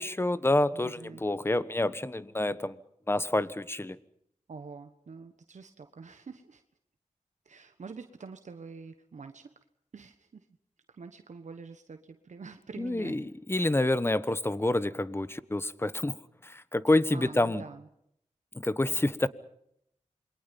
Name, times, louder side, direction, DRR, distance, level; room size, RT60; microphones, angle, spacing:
voice 1, 0.0-2.8 3.1-4.0 12.8-16.2 16.4-17.6 18.5-19.3, left 2 dB, 20° left, 15 dB, 1.1 m, -28 dB
voice 2, 0.7-1.2 4.5-6.6 7.4-9.5 9.9-10.5 10.9-13.2 17.1-17.9, right 4 dB, 70° right, 8 dB, 1.3 m, -46 dB
28.0 x 23.0 x 5.4 m, 0.73 s
wide cardioid pair, 65°, 13 cm